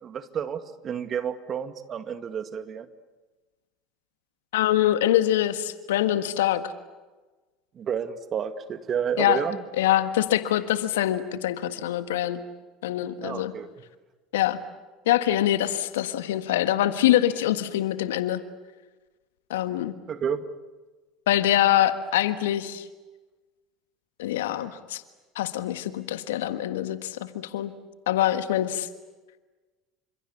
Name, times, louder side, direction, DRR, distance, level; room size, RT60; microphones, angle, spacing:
voice 1, 0.0-2.9 7.7-9.6 13.2-13.7 20.1-20.4, right 8 dB, 40° right, 10 dB, 2.1 m, -30 dB
voice 2, 4.5-6.6 9.2-9.4 9.8-12.4 12.8-13.5 14.3-14.6 15.0-18.4 19.5-19.9 21.3-22.9 24.2-25.0 25.3-27.7 28.1-28.9, left 13 dB, 75° left, 11 dB, 1.5 m, -24 dB
29.5 x 26.5 x 7.1 m, 1.3 s
hypercardioid pair, 75°, 0 cm